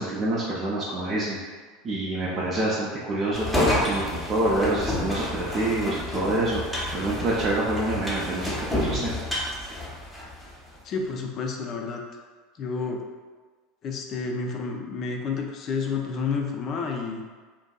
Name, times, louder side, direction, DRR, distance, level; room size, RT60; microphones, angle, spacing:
voice 1, 0.0-1.4 1.8-6.6 6.9-9.1, right 1 dB, 35° right, -6 dB, 0.4 m, -26 dB
sound 1, 3.3-10.5, left 1 dB, ahead, 0.7 m, -30 dB
voice 2, 10.8-12.0 12.6-13.0 13.8-17.2, left 5 dB, 40° left, 1 dB, 0.4 m, -30 dB
2.5 x 2.3 x 2.3 m, 1.4 s
figure-of-eight pair, 80°, 0 cm